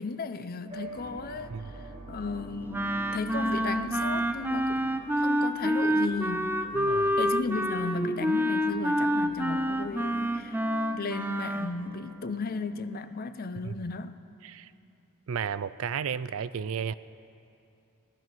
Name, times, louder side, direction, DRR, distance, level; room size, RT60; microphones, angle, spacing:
voice 1, 0.0-6.6 7.2-10.6 10.9-14.2, left 4 dB, 45° left, 11 dB, 0.6 m, -35 dB
sound 1, 0.7-12.6, right 1 dB, 30° right, 3.3 m, -47 dB
Wind instrument woodwind instrument, 2.7-11.7, equal, 10° right, 0.5 m, -28 dB
voice 2, 6.8-7.1 13.6-13.7 14.4-14.7 15.3-16.9, right 7 dB, 65° right, 16 dB, 0.4 m, -33 dB
18.5 x 12.5 x 6.0 m, 2.7 s
head